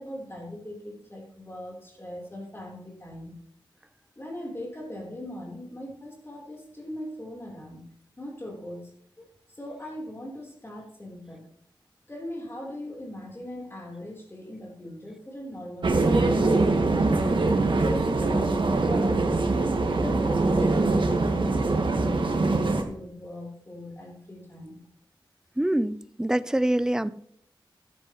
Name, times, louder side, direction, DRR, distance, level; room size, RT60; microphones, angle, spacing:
voice 1, 0.0-3.4 4.2-8.9 9.2-9.3 9.5-11.5 12.1-17.2 17.7-19.3 19.8-24.8, left 1 dB, 25° left, -1 dB, 3.6 m, -40 dB
sound 1, 15.8-22.8, right 3 dB, 70° right, 1.5 m, -23 dB
voice 2, 25.6-27.1, right 1 dB, 5° right, 15 dB, 0.5 m, -25 dB
13.0 x 11.0 x 3.0 m, 0.66 s
wide cardioid pair, 85°, 9 cm